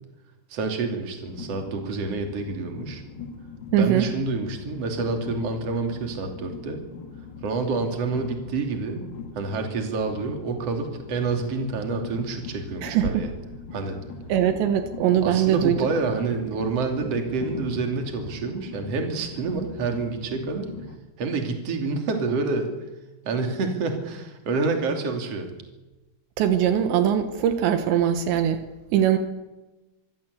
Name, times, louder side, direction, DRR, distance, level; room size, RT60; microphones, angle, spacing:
voice 1, 0.5-3.0 3.8-6.8 7.4-9.0 9.3-13.3 13.7-14.0 15.2-20.7 21.2-22.7 23.2-25.5, right 4 dB, 40° right, 5 dB, 3.3 m, -28 dB
Train, 1.2-21.0, left 4 dB, 65° left, 1.1 m, -41 dB
voice 2, 3.7-4.1 12.8-13.2 14.3-15.9 26.4-28.6 28.9-29.2, right 10 dB, 80° right, 8 dB, 3.4 m, -21 dB
25.0 x 15.5 x 8.3 m, 1.1 s
omnidirectional pair, 5.3 m